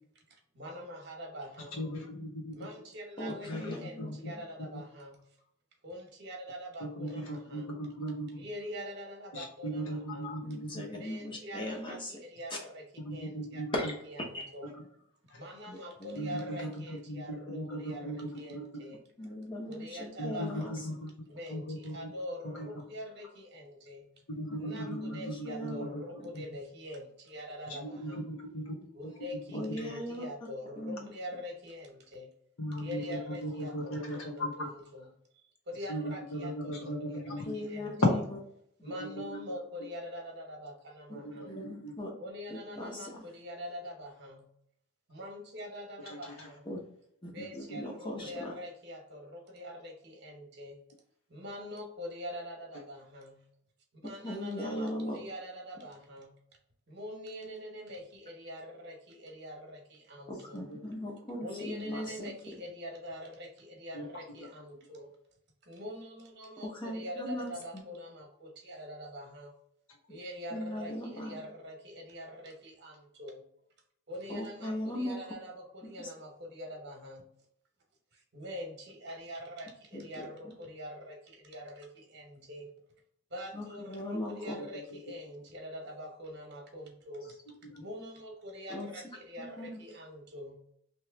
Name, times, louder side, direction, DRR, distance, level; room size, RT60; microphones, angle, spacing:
voice 1, 0.5-1.8 2.6-5.2 5.8-7.7 8.3-10.3 11.0-12.8 13.1-13.6 14.1-14.7 15.3-19.0 19.7-20.7 21.3-24.1 24.6-28.2 28.9-32.3 32.8-35.1 35.7-36.9 37.2-38.0 38.8-41.6 42.2-44.5 45.1-46.6 47.3-50.8 51.3-53.5 54.0-56.4 56.9-60.6 61.4-65.1 65.6-69.5 70.1-73.4 74.1-77.3 78.1-82.7 83.3-87.3 87.8-90.6, equal, 50° right, 2 dB, 1.0 m, -44 dB
voice 2, 1.7-2.6 3.4-4.3 4.7-4.8 6.8-8.4 9.3-10.8 13.1-13.7 15.3-15.4 16.1-18.7 20.2-22.1 22.4-22.7 24.3-26.4 27.7-29.1 29.5-29.9 32.6-34.7 35.9-37.4 38.0-38.1 39.0-39.4 39.8-39.9 41.2-41.5 41.8-41.9 46.1-46.5 47.7-47.8 60.5-60.8 63.9-64.1 84.6-85.0 87.7-87.8, equal, 80° left, 0 dB, 1.1 m, -37 dB
voice 3, 3.2-4.4 10.4-12.2 12.5-12.6 13.7-14.0 14.3-14.5 15.7-16.4 19.2-20.9 24.5-25.8 29.5-30.3 30.8-31.1 37.4-38.0 41.5-42.1 42.5-43.3 46.6-46.8 47.2-48.5 54.0-55.2 60.3-62.3 66.6-67.8 70.5-71.4 74.3-75.2 76.0-76.1 79.9-80.5 83.5-84.6 88.7-88.9 89.4-89.8, left 1 dB, 25° left, 0 dB, 0.9 m, -39 dB
3.1 x 3.0 x 3.4 m, 0.71 s
head